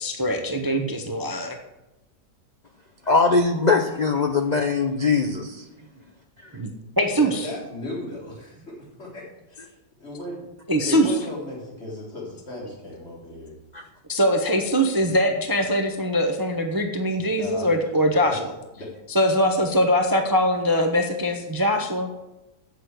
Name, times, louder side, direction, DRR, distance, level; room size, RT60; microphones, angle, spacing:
voice 1, 0.0-1.6 6.5-6.7 7.0-7.5 10.7-11.1 14.1-18.5 19.1-22.1, equal, 25° right, 4 dB, 0.5 m, -22 dB
voice 2, 3.1-5.6 13.7-13.8, left 4 dB, 80° left, 4 dB, 0.4 m, -21 dB
voice 3, 7.1-10.5 10.8-13.5 17.2-17.7 18.2-18.4 18.8-18.9, left 1 dB, 35° left, -4 dB, 3.7 m, -36 dB
8.3 x 6.1 x 8.1 m, 0.98 s
omnidirectional pair, 1.9 m